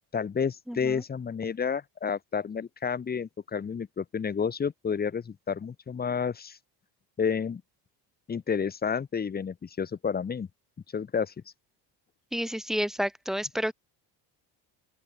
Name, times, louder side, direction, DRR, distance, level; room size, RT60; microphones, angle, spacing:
voice 1, 0.1-6.6 7.2-7.6 8.3-10.5 10.9-11.3, left 6 dB, 25° left, 2.4 m, -30 dB
voice 2, 0.7-1.0 12.3-13.7, equal, ahead, 1.9 m, -30 dB
open air
cardioid pair, 160°, 40 cm